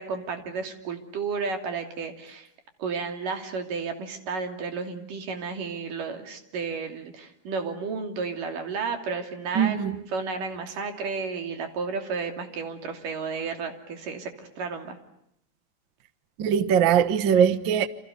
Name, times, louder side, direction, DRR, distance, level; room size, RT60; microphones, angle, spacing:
voice 1, 0.0-2.5 2.8-15.0, right 5 dB, 90° right, 4.5 m, -32 dB
voice 2, 9.5-9.9 16.4-17.9, right 8 dB, 55° right, 1.4 m, -21 dB
29.0 x 28.0 x 6.8 m
omnidirectional pair, 3.7 m